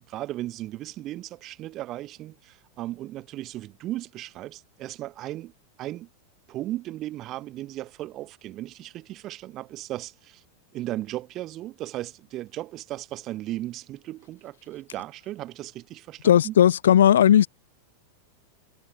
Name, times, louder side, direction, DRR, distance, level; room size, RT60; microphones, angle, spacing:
voice 1, 0.0-5.5 5.8-6.1 6.5-10.4 10.7-16.5, right 15 dB, 35° right, 1.5 m, -36 dB
voice 2, 16.2-17.5, left 10 dB, 65° left, 0.6 m, -16 dB
figure-of-eight pair, 90°, 0 cm